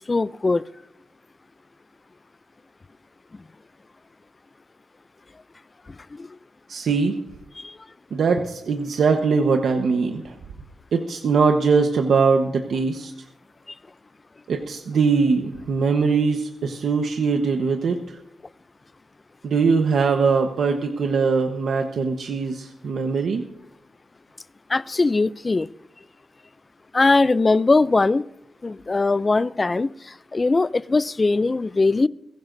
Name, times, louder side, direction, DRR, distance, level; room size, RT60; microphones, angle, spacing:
voice 1, 0.1-0.6 6.2-6.3 24.7-25.7 26.9-28.2 28.6-29.9 30.3-32.1, left 3 dB, 30° left, 0.4 m, -20 dB
voice 2, 6.7-7.1 8.1-10.3 10.9-13.1 14.5-18.0 19.4-23.4, right 5 dB, 85° right, 1.1 m, -21 dB
21.5 x 16.0 x 2.7 m
wide cardioid pair, 115°, 0 cm